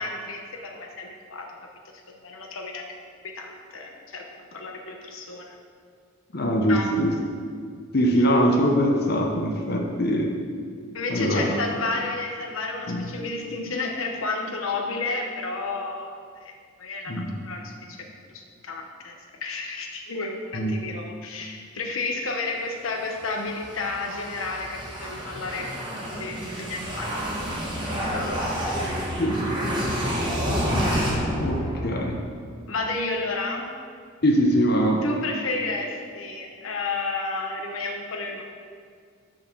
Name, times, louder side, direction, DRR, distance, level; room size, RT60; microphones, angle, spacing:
voice 1, 0.0-1.5 2.1-2.9 3.4-4.2 4.5-5.5 6.7-6.9 8.1-8.2 10.9-17.1 17.4-18.1 18.3-19.1 19.4-25.6 26.2-28.3 32.7-33.7 35.0-38.4, left 3 dB, 85° left, 2 dB, 1.0 m, -31 dB
voice 2, 6.3-7.1 7.9-10.3 11.1-11.5 12.9-13.0 17.1-17.3 20.5-20.7 29.2-29.8 31.4-32.2 34.2-35.0, equal, 50° left, 0 dB, 0.9 m, -22 dB
sound 1, 23.0-32.4, equal, 25° right, 1.6 m, -29 dB
6.4 x 6.3 x 6.1 m, 2.1 s
head